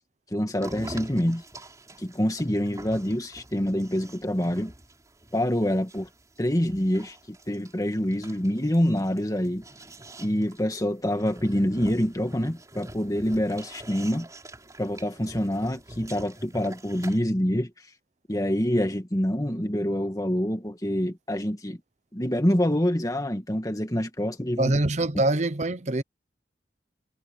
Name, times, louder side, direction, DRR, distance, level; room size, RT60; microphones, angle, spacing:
voice 1, 0.3-1.4 2.0-4.7 5.3-6.1 6.4-7.2 7.5-9.6 10.2-14.3 14.8-17.7 18.3-21.8 22.1-24.8, equal, 20° left, 1.9 m, -26 dB
sound 1, 0.6-17.2, right 1 dB, 20° right, 4.5 m, -46 dB
voice 2, 24.6-26.0, right 2 dB, 40° right, 0.8 m, -24 dB
head